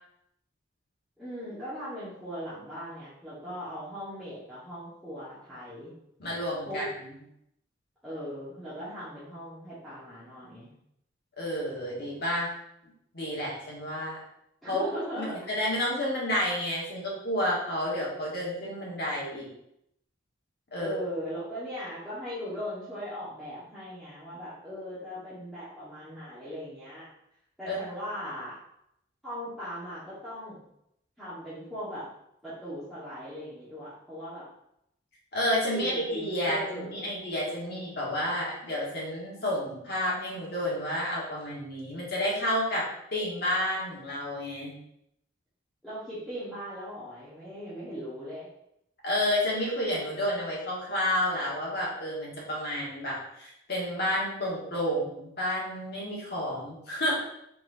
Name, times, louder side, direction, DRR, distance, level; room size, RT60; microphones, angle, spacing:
voice 1, 1.2-5.9 6.7-6.9 8.0-10.7 14.6-15.5 20.8-27.1 27.6-28.6 29.2-30.6 31.2-32.1 32.4-34.5 35.7-37.1 37.6-38.4 45.8-48.5, equal, ahead, -14 dB, 1.3 m, -39 dB
voice 2, 6.2-6.9 11.4-12.5 13.1-14.2 14.7-14.9 15.2-19.5 20.7-20.9 27.6-27.8 35.3-44.7 49.0-57.2, left 1 dB, 50° left, -4 dB, 1.4 m, -30 dB
4.5 x 4.1 x 2.7 m, 0.77 s
head